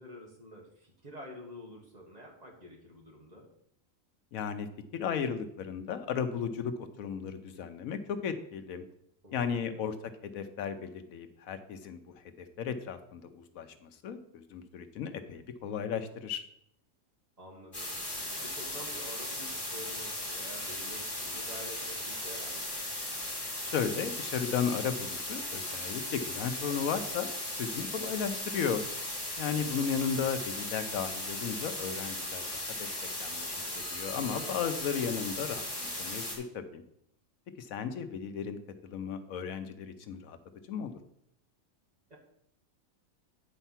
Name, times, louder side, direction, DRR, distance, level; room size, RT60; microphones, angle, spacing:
voice 1, 0.0-3.5 9.2-9.8 17.4-22.7 34.0-34.7 42.1-42.2, equal, 30° right, -1 dB, 1.7 m, -48 dB
voice 2, 4.3-4.7 4.9-8.8 9.3-9.9 10.2-12.0 12.4-16.4 23.6-27.3 27.6-28.8 29.4-32.9 33.2-36.8 37.6-38.6 38.8-40.4 40.7-40.9, left 7 dB, 85° left, 9 dB, 1.2 m, -35 dB
sound 1, 17.7-36.4, left 1 dB, 15° left, 1.9 m, -37 dB
9.1 x 4.5 x 5.7 m, 0.73 s
omnidirectional pair, 1.4 m